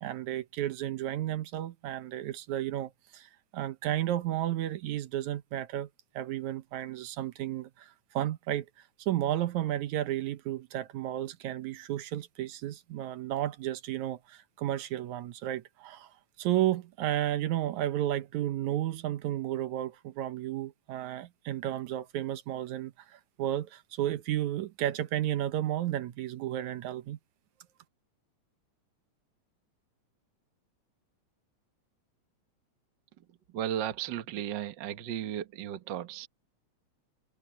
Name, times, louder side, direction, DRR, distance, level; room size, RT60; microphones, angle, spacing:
voice 1, 0.0-5.9 6.2-8.7 9.0-16.1 16.4-27.2, right 13 dB, 80° right, 2.4 m, -32 dB
voice 2, 33.2-36.3, right 10 dB, 50° right, 1.4 m, -35 dB
omnidirectional pair, 3.3 m